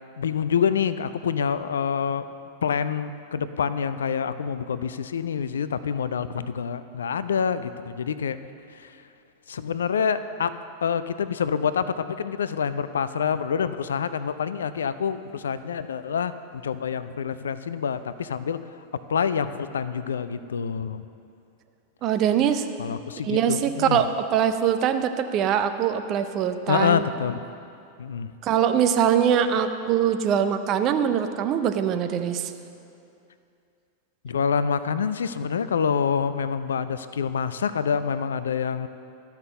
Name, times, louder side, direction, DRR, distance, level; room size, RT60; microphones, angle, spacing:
voice 1, 0.2-2.3 2.6-8.4 8.7-9.0 9.5-10.5 10.8-18.6 19.1-21.0 22.8-24.0 26.7-27.4 28.0-28.3 34.2-38.9, left 7 dB, 65° left, 13 dB, 0.3 m, -27 dB
voice 2, 22.0-22.7 23.2-27.0 28.4-32.5, right 8 dB, 35° right, 8 dB, 0.6 m, -23 dB
12.0 x 5.9 x 6.6 m, 2.6 s
figure-of-eight pair, 90°, 0 cm